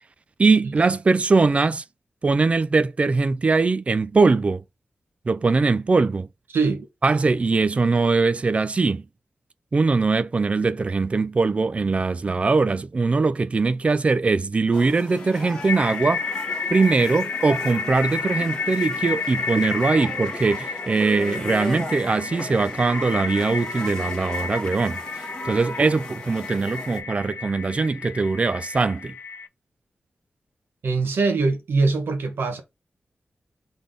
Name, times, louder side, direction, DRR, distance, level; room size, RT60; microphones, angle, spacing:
voice 1, 0.4-1.8 2.2-4.6 5.3-6.3 7.0-9.0 9.7-16.2 16.7-25.0 25.4-29.1, right 4 dB, 35° right, 0.4 m, -21 dB
voice 2, 6.5-6.9 30.8-32.6, right 3 dB, 85° right, 1.2 m, -22 dB
sound 1, 14.7-27.0, equal, 20° left, 1.3 m, -37 dB
sound 2, 15.2-29.5, left 5 dB, 75° left, 0.4 m, -31 dB
3.9 x 3.4 x 3.6 m
wide cardioid pair, 135°, 4 cm